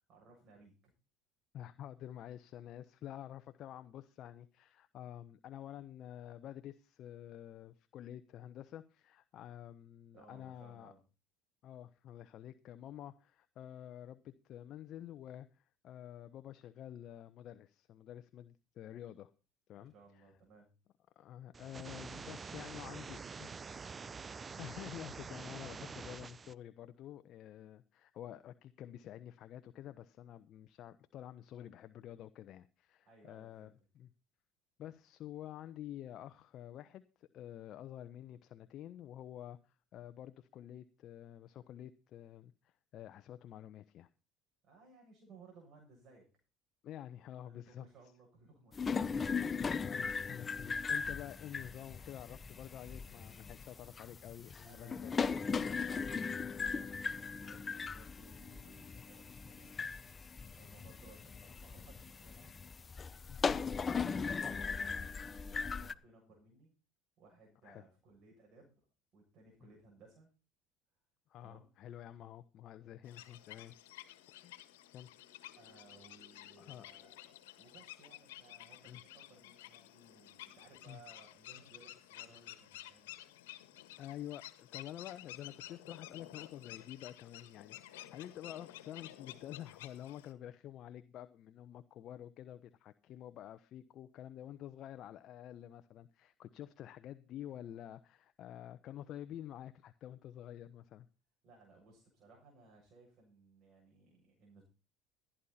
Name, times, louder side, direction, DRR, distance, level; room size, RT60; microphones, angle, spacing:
voice 1, 0.1-0.7 10.1-11.0 19.8-20.7 22.3-24.3 33.0-33.7 44.6-46.3 47.4-49.6 54.6-59.8 60.6-62.5 62.9-66.7 67.2-68.9 69.1-70.3 71.4-71.7 75.6-77.2 77.5-83.2 101.4-104.6, right 3 dB, 55° right, 7.7 m, -61 dB
voice 2, 1.5-10.9 11.6-19.3 19.7-20.2 21.2-23.5 24.3-34.1 34.8-44.1 46.8-47.9 49.6-55.1 63.3-63.6 67.6-67.8 71.3-73.7 74.4-74.5 74.9-75.1 76.6-76.9 78.8-79.0 80.9-81.0 84.0-101.1, left 11 dB, 55° left, 0.9 m, -49 dB
sound 1, 21.5-26.5, right 5 dB, 30° right, 0.7 m, -46 dB
sound 2, 48.7-65.9, left 5 dB, 30° left, 0.8 m, -38 dB
sound 3, 73.0-90.3, left 14 dB, 90° left, 1.6 m, -52 dB
15.5 x 10.5 x 4.3 m
supercardioid pair, 85°, 0 cm